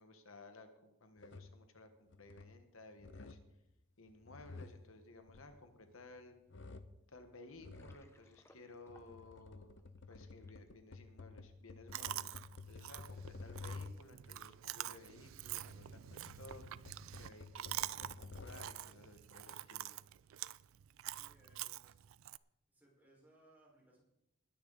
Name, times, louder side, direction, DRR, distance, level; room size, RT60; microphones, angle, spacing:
voice 1, 0.0-3.4 4.0-6.4 7.1-9.7 10.1-12.4 12.7-19.9, left 2 dB, 75° left, 7 dB, 1.3 m, -57 dB
sound 1, 1.2-1.6 2.1-2.6 3.0-3.5 4.1-6.1 6.5-7.0 7.6-8.1 8.7-14.2 15.1-18.9, left 3 dB, 55° left, 0.8 m, -52 dB
Water, 7.6-10.7, left 1 dB, 10° left, 0.8 m, -68 dB
Chewing mastication, 11.9-22.4, right 13 dB, 70° right, 0.4 m, -46 dB
voice 2, 21.0-22.0 22.7-24.0, right 1 dB, 10° right, -5 dB, 4.9 m, -67 dB
20.5 x 9.9 x 4.0 m, 0.89 s
head